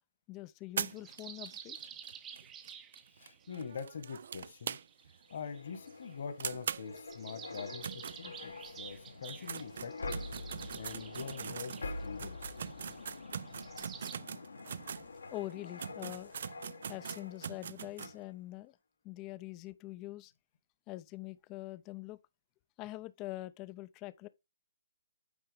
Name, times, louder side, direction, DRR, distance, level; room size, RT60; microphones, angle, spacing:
voice 1, 0.3-1.8 15.3-16.6 16.9-18.8 19.0-20.3 20.9-22.2 22.8-24.3, left 17 dB, 25° left, 0.5 m, -44 dB
sound 1, 0.8-5.2 5.5-5.6 5.9-6.0 6.4-8.7 9.1-15.1 15.5-15.6 15.8-18.1, right 7 dB, 60° right, 0.4 m, -42 dB
sound 2, 1.0-3.7 4.4-6.1 6.9-14.2, right 8 dB, 15° right, 0.7 m, -51 dB
voice 2, 3.2-4.8 5.3-10.2 10.7-12.5, left 6 dB, 60° left, 1.7 m, -44 dB
sound 3, 5.3-17.6 18.0-18.2, left 3 dB, 80° left, 1.4 m, -46 dB
8.8 x 4.5 x 3.5 m
hypercardioid pair, 145°, 0 cm